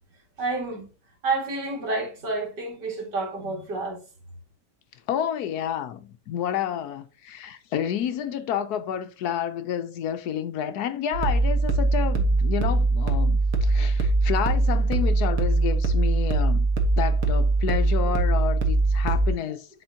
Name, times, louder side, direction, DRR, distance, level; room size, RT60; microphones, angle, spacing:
voice 1, 0.4-0.9 1.2-4.0, right 3 dB, 80° right, 2.7 m, -29 dB
voice 2, 5.1-16.7 17.0-19.8, left 9 dB, 70° left, 1.1 m, -30 dB
sound 1, 11.1-19.3, right 2 dB, 55° right, 1.5 m, -22 dB
11.0 x 3.8 x 2.7 m
omnidirectional pair, 1.8 m